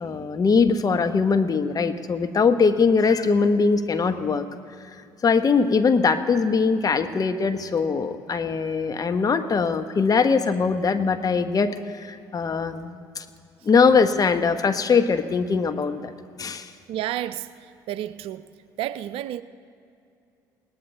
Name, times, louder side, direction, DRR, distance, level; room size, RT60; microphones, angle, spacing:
voice 1, 0.0-4.5 5.2-13.2 13.6-16.1 16.4-16.7, left 5 dB, 35° left, 1.1 m, -21 dB
voice 2, 16.9-17.5 17.9-18.5 18.8-19.4, right 12 dB, 60° right, 0.5 m, -30 dB
20.5 x 18.0 x 3.4 m
hypercardioid pair, 55°, 10 cm